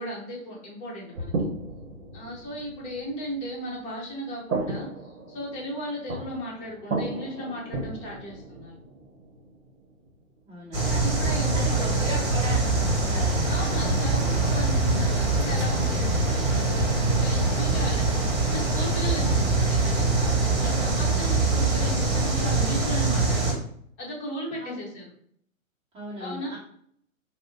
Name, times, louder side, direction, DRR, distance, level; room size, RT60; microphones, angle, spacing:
voice 1, 0.0-1.3 2.1-8.7 10.9-12.3 13.5-20.3 20.6-23.6 24.0-25.0 26.2-26.5, equal, 15° left, -4 dB, 0.8 m, -36 dB
sound 1, 1.1-4.2 4.5-10.6 12.7-13.1 15.3-16.3, right 3 dB, 70° right, 0.8 m, -36 dB
voice 2, 10.4-11.1 11.5-14.6 24.6-24.8 25.9-26.6, equal, 15° right, -9 dB, 1.1 m, -38 dB
sound 2, 10.7-23.5, right 3 dB, 40° right, 1.3 m, -23 dB
2.5 x 2.0 x 3.7 m, 0.65 s
figure-of-eight pair, 125°, 42 cm